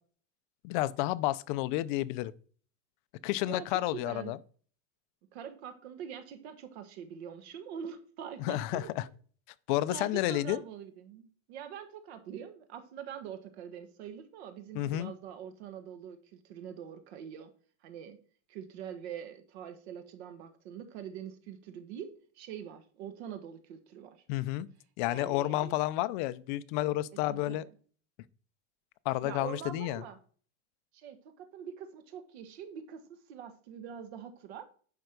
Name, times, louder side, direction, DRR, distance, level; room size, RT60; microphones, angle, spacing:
voice 1, 0.6-2.3 3.2-4.4 8.4-9.0 9.7-10.6 14.7-15.1 24.3-24.7 25.0-27.6 29.1-30.0, left 16 dB, 45° left, 0.6 m, -31 dB
voice 2, 3.9-4.3 5.3-8.9 9.9-17.5 17.8-18.2 18.5-24.2 25.0-25.8 27.2-27.6 29.2-30.2 30.9-34.7, right 8 dB, 65° right, 1.6 m, -44 dB
10.5 x 4.6 x 6.6 m
supercardioid pair, 180°, 34 cm